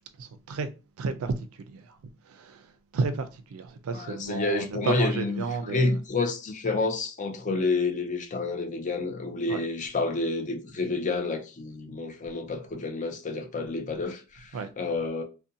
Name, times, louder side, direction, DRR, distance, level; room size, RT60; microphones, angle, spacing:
voice 1, 0.2-0.7 1.0-1.8 2.3-2.6 2.9-6.0 9.5-9.6 14.5-14.7, right 4 dB, 65° right, 0.4 m, -32 dB
voice 2, 3.9-15.2, left 3 dB, 35° left, 0.4 m, -29 dB
2.5 x 2.1 x 2.6 m
head